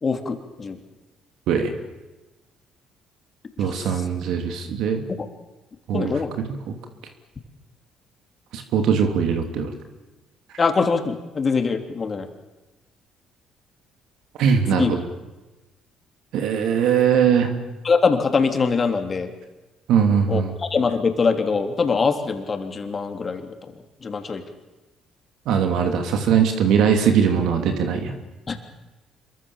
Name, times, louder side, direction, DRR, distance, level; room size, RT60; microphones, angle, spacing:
voice 1, 0.0-0.8 3.6-4.0 5.1-5.3 5.9-6.3 10.6-12.3 14.7-15.0 17.8-19.3 20.3-23.5 24.0-24.4 28.5-28.6, left 5 dB, 40° left, 5 dB, 3.4 m, -23 dB
voice 2, 3.6-5.0 5.9-6.1 6.7-6.8 8.5-9.7 14.4-14.9 16.3-17.5 19.9-20.5 25.5-28.1, right 7 dB, 70° right, 5 dB, 2.8 m, -20 dB
26.0 x 23.0 x 7.3 m, 1.1 s
hypercardioid pair, 60°, 0 cm